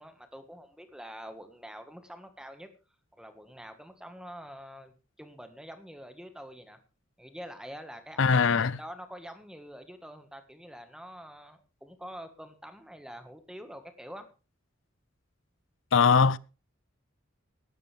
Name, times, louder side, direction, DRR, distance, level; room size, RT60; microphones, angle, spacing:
voice 1, 0.0-2.7 3.2-4.9 5.2-6.8 7.2-8.4 8.8-14.3, equal, 5° right, 1.6 m, -46 dB
voice 2, 8.2-8.8 15.9-16.4, left 5 dB, 70° left, 0.5 m, -21 dB
16.5 x 12.0 x 3.5 m
head